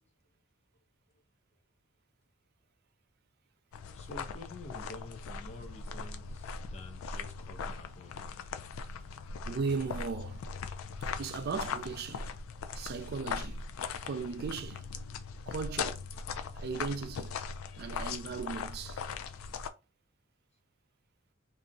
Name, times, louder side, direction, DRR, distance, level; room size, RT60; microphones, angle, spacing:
sound 1, 3.7-19.7, left 5 dB, 90° left, 0.3 m, -40 dB
voice 1, 3.9-8.5, left 2 dB, 35° left, 0.6 m, -49 dB
voice 2, 9.5-10.4 11.2-12.3 12.7-13.6 14.0-14.9 15.5-16.1 16.6-17.4 17.8-19.0, right 5 dB, 50° right, 0.3 m, -37 dB
2.7 x 2.1 x 2.5 m
head